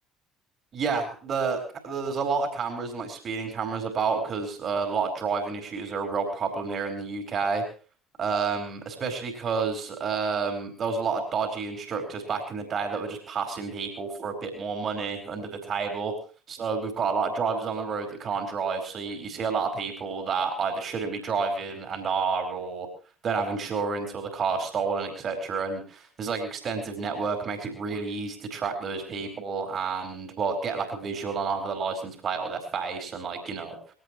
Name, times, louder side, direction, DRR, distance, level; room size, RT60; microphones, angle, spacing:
voice 1, 0.7-1.6 1.8-7.6 8.2-16.1 16.5-22.9 23.2-33.9, right 5 dB, 40° right, 4 dB, 4.8 m, -30 dB
22.0 x 17.5 x 3.2 m, 0.39 s
figure-of-eight pair, 55°, 0 cm